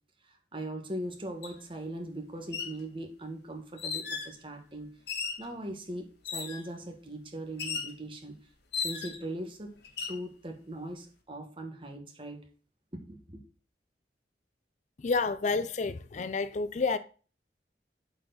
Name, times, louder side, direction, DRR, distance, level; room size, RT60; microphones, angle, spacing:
voice 1, 0.2-4.9 5.4-8.4 8.7-9.7 10.1-12.5 12.9-13.4, right 1 dB, 30° right, 1.6 m, -40 dB
sound 1, 1.4-1.5 2.4-2.8 3.8-4.3 5.1-5.5 6.2-6.7 7.6-8.0 8.7-9.3 9.8-10.2, left 6 dB, 65° left, 1.6 m, -35 dB
voice 2, 15.0-17.0, left 4 dB, 40° left, 0.4 m, -29 dB
8.5 x 4.7 x 4.0 m
head